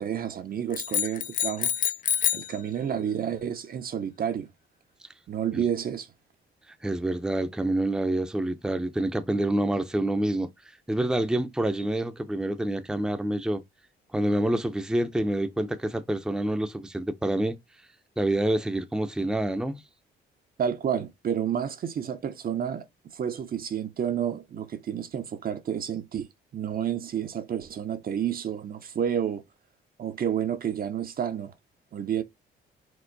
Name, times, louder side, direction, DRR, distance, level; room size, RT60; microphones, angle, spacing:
voice 1, 0.0-1.7 2.3-4.5 5.3-6.1 20.6-22.9 23.1-26.3 26.5-29.4 30.0-31.5 31.9-32.2, right 9 dB, 50° right, 0.7 m, -30 dB
sound 1, 0.7-2.6, left 9 dB, 45° left, 0.4 m, -27 dB
voice 2, 6.8-10.5 10.9-13.6 14.1-17.6 18.2-19.8, right 1 dB, 5° right, 0.6 m, -27 dB
4.5 x 2.0 x 3.9 m
cardioid pair, 90°, 20 cm